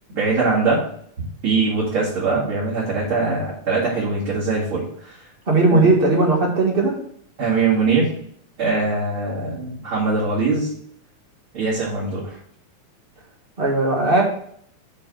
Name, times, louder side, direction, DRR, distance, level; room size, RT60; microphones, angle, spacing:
voice 1, 0.1-0.8 1.4-5.2 5.7-5.9 7.4-8.1 8.6-10.7 11.5-12.4, right 4 dB, 45° right, -9 dB, 2.9 m, -22 dB
voice 2, 5.5-6.9 13.6-14.2, right 2 dB, 30° right, -1 dB, 1.1 m, -17 dB
7.4 x 4.1 x 6.2 m, 0.63 s
omnidirectional pair, 3.4 m